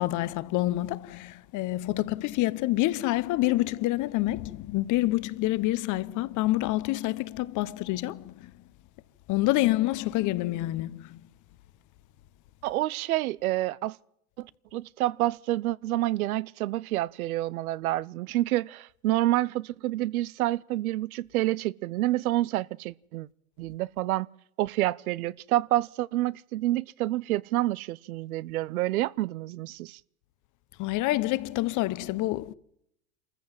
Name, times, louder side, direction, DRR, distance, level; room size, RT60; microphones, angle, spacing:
voice 1, 0.0-8.5 9.3-11.2 30.8-32.5, left 17 dB, 45° left, 1.0 m, -27 dB
voice 2, 12.6-14.0 14.4-23.3 23.6-24.3 24.6-30.0, right 16 dB, 85° right, 0.7 m, -28 dB
26.5 x 14.5 x 7.5 m
hypercardioid pair, 110°, 42 cm